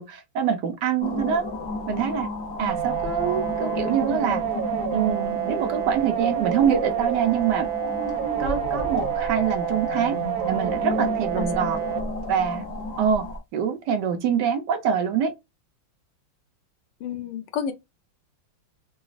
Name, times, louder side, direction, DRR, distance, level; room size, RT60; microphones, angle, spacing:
voice 1, 0.0-1.4 1.9-2.3 2.6-4.4 4.9-7.7 8.4-10.2 10.5-11.8 12.3-12.7 13.0-13.3 13.5-15.3, right 8 dB, 70° right, 1.1 m, -25 dB
sound 1, 1.0-13.4, left 2 dB, 55° left, 0.7 m, -32 dB
sound 2, 2.7-12.0, right 11 dB, 90° right, 1.5 m, -29 dB
voice 2, 11.4-11.7 17.0-17.7, left 7 dB, 75° left, 1.2 m, -31 dB
3.9 x 2.3 x 2.4 m
omnidirectional pair, 2.1 m